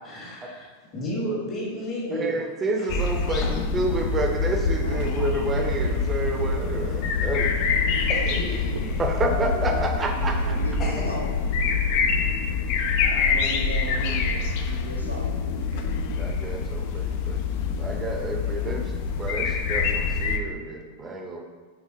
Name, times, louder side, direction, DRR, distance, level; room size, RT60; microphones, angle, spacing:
voice 1, 0.0-0.7 0.9-2.4 2.8-3.5 8.1-9.0 10.8-11.2, left 1 dB, 30° left, -3 dB, 1.2 m, -32 dB
voice 2, 2.1-7.8 9.0-10.6 16.2-17.5 17.8-21.4, right 2 dB, 20° right, 2 dB, 0.6 m, -29 dB
sound 1, 2.9-20.4, left 4 dB, 45° left, 0.3 m, -25 dB
sound 2, 8.7-8.9 10.4-11.1 12.4-12.8 13.4-13.6 15.4-15.9 16.8-16.9, right 1 dB, 65° right, 0.6 m, -42 dB
voice 3, 9.1-11.3 13.0-15.5 18.3-18.6, equal, 90° left, -2 dB, 0.7 m, -37 dB
4.8 x 3.5 x 2.7 m, 1.4 s
figure-of-eight pair, 90°, 0 cm